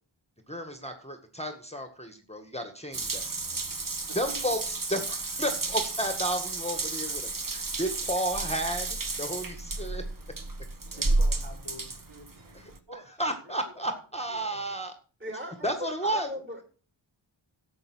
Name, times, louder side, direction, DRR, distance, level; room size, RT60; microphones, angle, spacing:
voice 1, 0.5-3.2 4.2-7.2 7.5-8.9 9.2-10.0 13.2-14.9 15.6-16.3, right 1 dB, 15° left, 7 dB, 1.7 m, -32 dB
Water tap faucet / Bathtub (filling or washing) / Drip, 2.9-12.8, right 3 dB, 40° right, 1.6 m, -32 dB
voice 2, 4.1-4.6 8.4-8.6 11.0-12.6 12.9-14.8 15.3-15.5 16.3-16.4, right 1 dB, 60° right, -1 dB, 5.4 m, -49 dB
voice 3, 15.2-16.6, equal, 25° right, 2 dB, 4.3 m, -38 dB
12.0 x 7.9 x 6.1 m, 0.39 s
wide cardioid pair, 70°, 48 cm